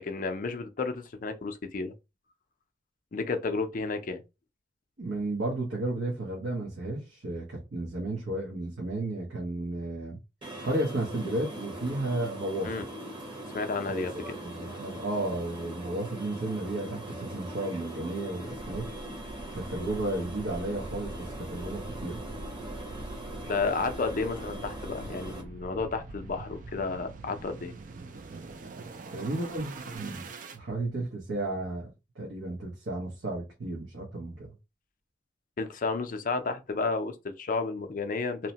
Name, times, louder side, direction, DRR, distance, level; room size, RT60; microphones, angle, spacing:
voice 1, 0.0-1.9 3.1-4.2 12.6-12.8 13.5-14.4 23.5-27.7 35.6-38.5, left 4 dB, 45° left, 0.4 m, -32 dB
voice 2, 5.0-10.2 10.6-12.8 13.8-18.9 19.5-22.2 29.1-34.5, right 2 dB, 75° right, 0.9 m, -33 dB
sound 1, 10.4-25.4, right 1 dB, 25° right, 0.9 m, -41 dB
sound 2, 18.5-30.6, right 2 dB, 45° right, 0.4 m, -44 dB
2.8 x 2.1 x 2.7 m
head